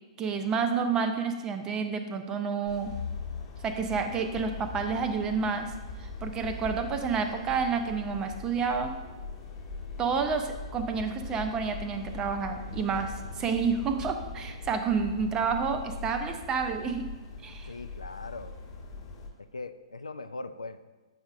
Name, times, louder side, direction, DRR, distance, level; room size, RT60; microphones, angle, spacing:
voice 1, 0.2-2.9 3.6-5.7 6.0-8.9 10.0-17.1 17.4-17.7, right 5 dB, 20° right, 6 dB, 0.5 m, -29 dB
sound 1, 2.7-19.3, left 4 dB, 30° left, 1.0 m, -40 dB
voice 2, 17.7-18.6 19.5-20.9, left 3 dB, 80° left, 10 dB, 0.3 m, -40 dB
7.9 x 4.9 x 2.5 m, 1.2 s
figure-of-eight pair, 115°, 3 cm